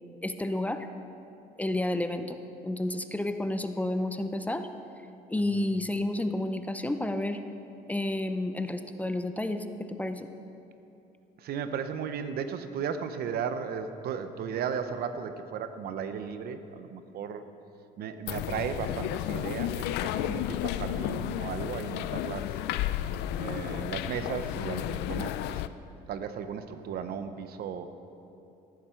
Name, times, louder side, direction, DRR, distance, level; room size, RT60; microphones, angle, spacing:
voice 1, 0.2-0.9 1.6-4.7 5.3-7.4 7.9-10.3, left 1 dB, 10° left, 8 dB, 0.6 m, -31 dB
voice 2, 5.4-5.7 11.4-17.4 18.0-22.6 23.4-25.6 26.1-27.9, right 7 dB, 65° right, 10 dB, 0.8 m, -35 dB
sound 1, 18.3-25.7, left 13 dB, 85° left, 0.4 m, -32 dB
14.5 x 11.5 x 4.5 m, 2.8 s
cardioid pair, 110°, 17 cm